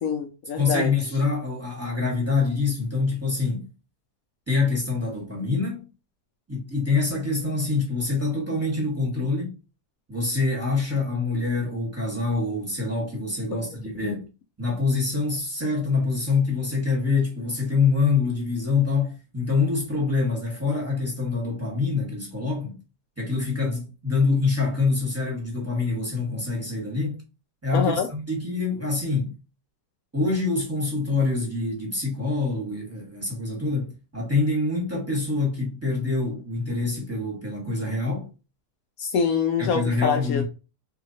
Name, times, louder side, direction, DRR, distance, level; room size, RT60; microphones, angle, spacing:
voice 1, 0.0-0.9 13.5-13.6 14.0-14.2 27.7-28.1 39.0-40.4, left 6 dB, 70° left, 0.9 m, -25 dB
voice 2, 0.5-3.7 4.5-5.8 6.5-9.6 10.1-14.3 14.6-22.8 23.2-27.2 27.6-29.4 30.1-38.3 39.6-40.4, left 3 dB, 10° right, 1.3 m, -25 dB
3.8 x 2.8 x 2.7 m
omnidirectional pair, 1.9 m